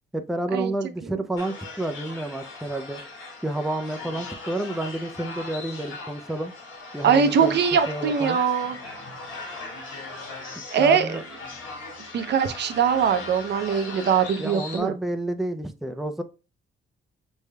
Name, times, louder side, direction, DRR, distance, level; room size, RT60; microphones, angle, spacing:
voice 1, 0.1-3.0 3.4-6.5 6.9-7.6 7.9-8.4 10.8-11.2 14.4-16.2, right 1 dB, ahead, 0.4 m, -30 dB
sound 1, 1.4-14.8, left 3 dB, 85° left, 1.5 m, -39 dB
voice 2, 7.0-8.8 10.7-11.2 12.1-14.9, right 7 dB, 60° right, 0.6 m, -22 dB
5.3 x 3.3 x 2.2 m
cardioid pair, 90°, 20 cm